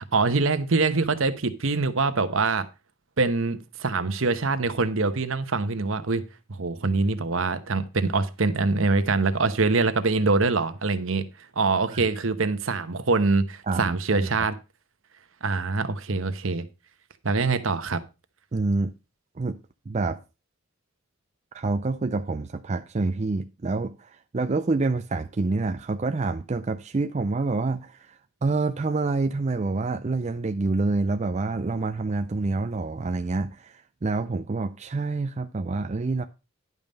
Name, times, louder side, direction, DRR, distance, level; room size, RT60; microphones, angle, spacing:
voice 1, 0.0-2.7 3.2-6.2 6.5-11.3 11.6-14.6 15.4-16.6 17.2-18.0, right 3 dB, 65° right, 0.9 m, -24 dB
voice 2, 13.7-14.3 18.5-18.9 19.4-19.6 19.9-20.2 21.5-36.2, right 3 dB, 30° right, 0.4 m, -27 dB
11.0 x 5.5 x 5.2 m
head